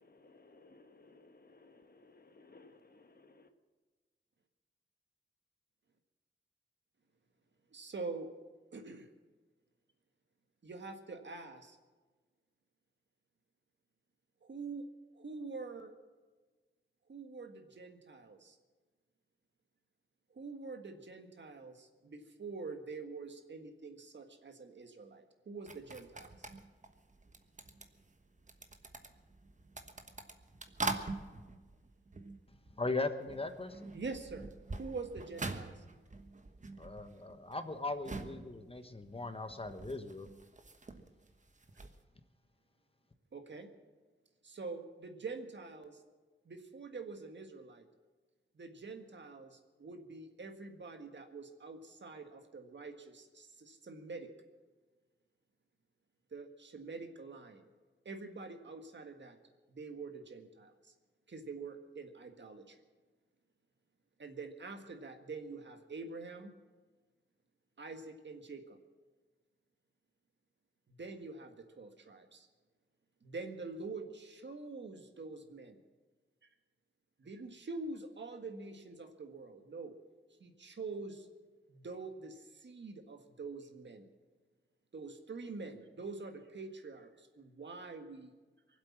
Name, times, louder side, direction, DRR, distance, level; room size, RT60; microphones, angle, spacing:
voice 1, 0.3-1.8 2.3-2.8 3.2-3.4, left 3 dB, 50° left, 7 dB, 1.3 m, -59 dB
voice 2, 7.7-8.3 8.7-9.1 10.6-11.8 14.4-14.8 15.1-15.9 17.1-18.6 20.3-26.5 33.9-34.5 34.8-35.8 43.3-43.7 44.4-46.0 46.4-47.9 48.5-54.3 56.3-57.6 58.0-59.4 59.7-60.9 61.3-62.8 64.2-66.5 67.8-68.8 70.9-72.5 73.2-75.8 77.2-79.9 80.4-81.3 81.7-84.1 84.9-88.3, right 3 dB, 65° right, 6 dB, 1.7 m, -45 dB
sound 1, 25.7-33.0 33.2-42.0, right 3 dB, 35° right, 1.2 m, -45 dB
voice 3, 32.7-33.9 36.8-40.3, left 3 dB, 30° left, 9 dB, 1.2 m, -39 dB
23.0 x 8.1 x 7.4 m, 1.3 s
wide cardioid pair, 75°, 20 cm